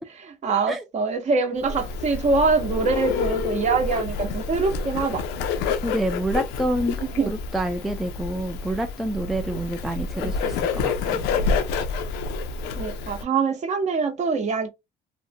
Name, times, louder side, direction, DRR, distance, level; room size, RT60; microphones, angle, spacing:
voice 1, 0.1-5.2 7.0-7.3 10.1-10.4 12.8-14.7, right 4 dB, 45° right, 0.7 m, -24 dB
Bird, 1.6-13.2, left 5 dB, 90° left, 0.5 m, -28 dB
voice 2, 5.8-11.2, right 1 dB, ahead, 0.3 m, -28 dB
2.6 x 2.1 x 2.6 m
cardioid pair, 110°, 17 cm